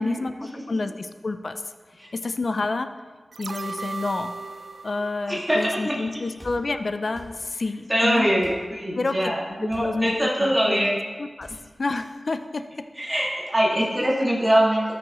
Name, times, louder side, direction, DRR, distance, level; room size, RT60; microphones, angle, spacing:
voice 1, 0.0-1.6 1.9-3.0 3.4-4.4 4.8-8.3 9.0-9.3 9.8-10.9 11.2-11.5 11.8-12.9 14.0-14.1, left 3 dB, 60° left, 10 dB, 0.5 m, -29 dB
sound 1, 3.3-6.5 6.8-6.9, right 3 dB, 75° right, 0.3 m, -37 dB
voice 2, 5.3-5.9 7.9-11.0 13.0-14.9, equal, 15° right, -5 dB, 2.0 m, -23 dB
sound 2, 6.4-6.6 7.1-7.3 8.4-8.6 9.7-9.9 11.4-11.6, equal, 10° left, 2.2 m, -44 dB
13.0 x 6.2 x 3.0 m, 1.5 s
wide cardioid pair, 60°, 0 cm